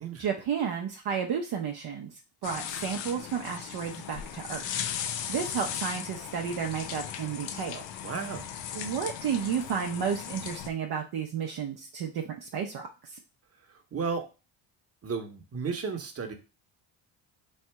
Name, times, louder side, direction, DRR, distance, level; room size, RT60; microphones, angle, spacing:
voice 1, 0.2-4.7 5.3-7.8 8.7-13.2, right 7 dB, 50° right, 2 dB, 0.7 m, -32 dB
sound 1, 2.4-10.7, left 9 dB, 65° left, 0.7 m, -37 dB
voice 2, 8.0-8.6 13.9-14.2 15.0-16.3, right 5 dB, 30° right, 4 dB, 1.0 m, -33 dB
3.2 x 2.7 x 4.5 m, 0.31 s
supercardioid pair, 70°, 49 cm